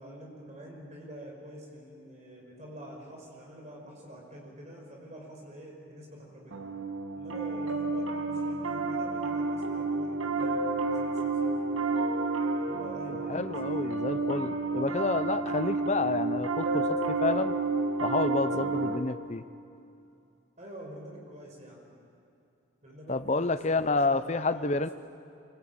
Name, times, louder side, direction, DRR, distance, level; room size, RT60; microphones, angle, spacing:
voice 1, 0.0-6.6 7.1-12.0 12.6-13.9 20.6-21.8 22.8-24.9, right 1 dB, 35° right, -1 dB, 5.8 m, -46 dB
Piano, 6.5-19.0, right 3 dB, 85° right, 1.9 m, -30 dB
voice 2, 13.3-17.5 18.0-19.4 23.1-24.9, left 3 dB, 35° left, 12 dB, 0.7 m, -29 dB
25.0 x 24.0 x 8.9 m, 2.6 s
head